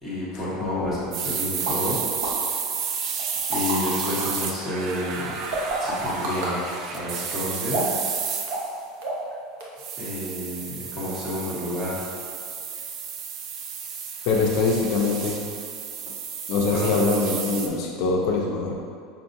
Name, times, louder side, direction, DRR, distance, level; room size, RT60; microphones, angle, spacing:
voice 1, 0.0-2.0 3.5-5.3 5.8-6.6 6.9-8.1 10.0-12.0 16.7-16.9, left 1 dB, 10° right, -10 dB, 1.2 m, -30 dB
sound 1, 1.1-8.7 9.8-17.7, right 6 dB, 45° right, 0.3 m, -32 dB
sound 2, 1.7-1.8 2.2-2.3 3.2-4.3 5.5-6.5 7.7-8.1 8.5-8.7 9.0-9.3 9.6-9.7, right 2 dB, 75° right, 0.8 m, -28 dB
voice 2, 14.3-15.4 16.5-18.7, left 4 dB, 60° left, -1 dB, 0.4 m, -23 dB
5.4 x 2.4 x 2.6 m, 2.2 s
supercardioid pair, 150°, 0 cm